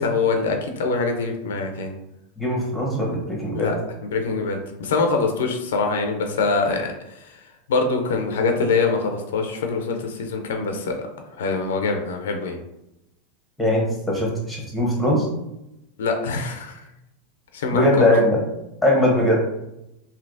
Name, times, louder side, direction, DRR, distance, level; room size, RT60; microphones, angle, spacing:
voice 1, 0.0-1.9 3.5-3.8 4.0-7.4 7.7-10.9 11.4-12.6 16.0-16.8 17.5-18.1, left 4 dB, 85° left, 4 dB, 0.5 m, -24 dB
voice 2, 2.4-3.7 13.6-15.3 17.7-18.4 18.8-19.4, left 1 dB, 5° left, -2 dB, 1.1 m, -20 dB
3.3 x 2.7 x 2.6 m, 0.89 s
hypercardioid pair, 115°, 0 cm